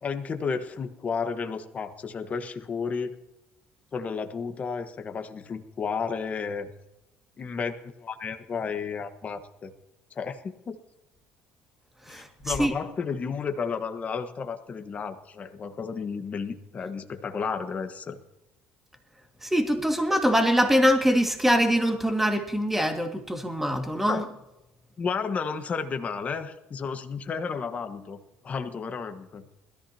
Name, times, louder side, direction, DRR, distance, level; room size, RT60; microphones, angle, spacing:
voice 1, 0.0-3.1 3.9-6.7 7.4-9.7 10.1-10.8 12.1-18.2 24.0-24.3 25.0-29.4, left 5 dB, 35° left, 6 dB, 1.4 m, -32 dB
voice 2, 19.4-24.2, equal, 5° right, 4 dB, 2.0 m, -23 dB
20.5 x 14.5 x 2.9 m, 0.93 s
cardioid pair, 115°, 4 cm